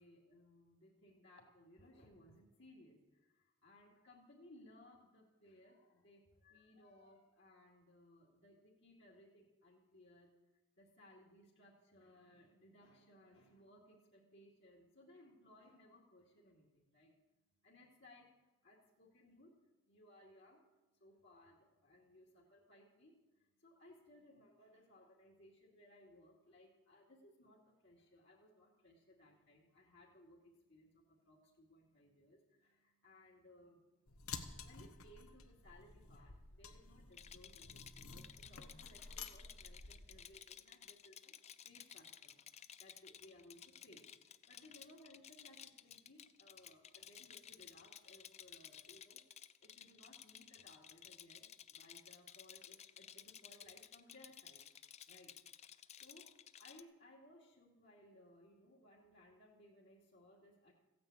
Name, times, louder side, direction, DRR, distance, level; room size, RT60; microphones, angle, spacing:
voice 1, 0.0-10.3 10.8-17.1 17.6-18.3 18.6-19.5 19.9-20.6 20.9-49.2 49.6-54.6 55.1-55.3 56.0-56.3 56.6-60.7, left 1 dB, 55° left, -3 dB, 2.5 m, -63 dB
sound 1, 34.1-40.3, left 5 dB, 85° left, 1.2 m, -52 dB
Rattle, 37.1-56.8, left 9 dB, 30° left, 0.5 m, -56 dB
15.5 x 9.5 x 8.5 m, 1.1 s
head